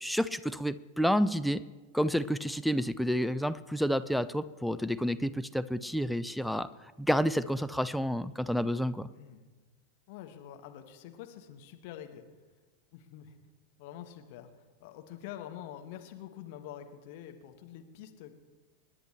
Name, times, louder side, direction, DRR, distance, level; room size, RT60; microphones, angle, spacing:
voice 1, 0.0-1.6 1.9-6.7 7.0-9.1, equal, ahead, 12 dB, 0.4 m, -29 dB
voice 2, 10.1-12.2 12.9-13.3 13.8-14.5 14.8-18.3, left 11 dB, 50° left, 6 dB, 1.2 m, -46 dB
26.0 x 10.0 x 3.3 m, 1.3 s
figure-of-eight pair, 90°, 0 cm